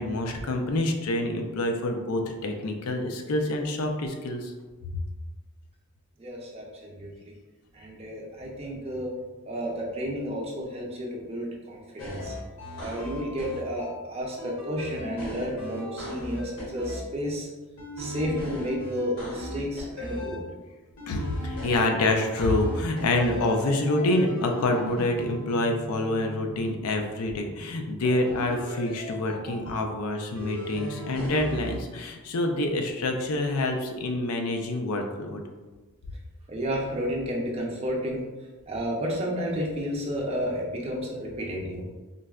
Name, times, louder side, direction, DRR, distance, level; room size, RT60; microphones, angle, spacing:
voice 1, 0.0-4.5 4.9-5.0 21.1-35.4, left 2 dB, 85° left, 4 dB, 0.4 m, -27 dB
voice 2, 6.2-6.6 6.9-7.3 7.7-9.1 9.5-12.3 12.8-17.5 18.0-20.4 36.5-38.2 38.7-41.8, equal, 30° right, -3 dB, 0.5 m, -31 dB
sound 1, 12.0-14.0 14.4-17.0 17.8-20.4 21.0-23.6 23.9-26.8 28.3-29.8 30.4-31.8, equal, 70° left, 0.9 m, -37 dB
3.8 x 2.1 x 2.3 m, 1.3 s
head